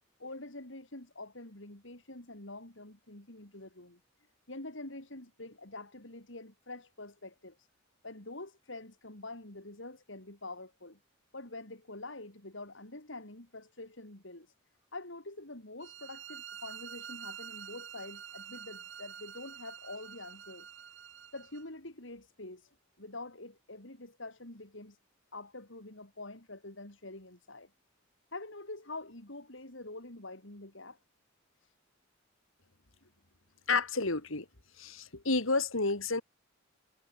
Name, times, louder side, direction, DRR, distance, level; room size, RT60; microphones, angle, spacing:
voice 1, 0.2-4.0 4.5-7.7 8.0-11.0 11.3-14.5 14.9-20.7 21.3-25.0 25.3-27.7 28.3-31.0 31.6-31.7, left 2 dB, 65° left, 3.9 m, -46 dB
sound 1, 15.8-21.6, right 8 dB, 60° right, 5.4 m, -47 dB
voice 2, 33.7-34.5 34.8-36.2, left 3 dB, 80° left, 3.1 m, -30 dB
head